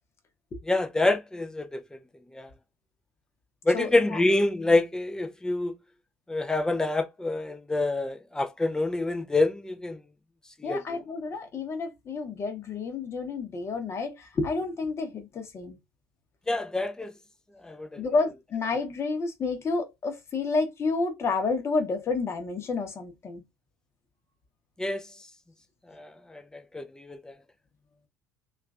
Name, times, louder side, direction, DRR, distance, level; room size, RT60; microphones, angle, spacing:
voice 1, 0.7-1.8 2.3-2.5 3.7-5.8 6.3-10.0 10.6-10.8 16.5-17.1 17.6-18.0 24.8-25.0 25.9-27.2, left 2 dB, 10° left, 0.5 m, -27 dB
voice 2, 3.7-4.2 10.6-15.8 18.0-23.4, left 4 dB, 30° left, 0.9 m, -30 dB
3.0 x 2.5 x 2.4 m
figure-of-eight pair, 60°, 8 cm